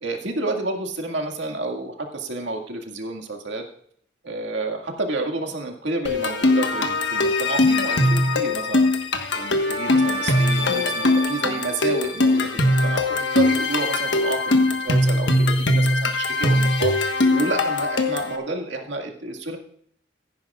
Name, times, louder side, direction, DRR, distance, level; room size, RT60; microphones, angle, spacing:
voice 1, 0.0-3.6 4.2-8.9 9.3-19.6, right 2 dB, 75° right, 2 dB, 2.0 m, -30 dB
sound 1, 6.1-18.4, left 2 dB, 70° left, 1.4 m, -21 dB
16.0 x 10.5 x 2.4 m, 0.64 s
head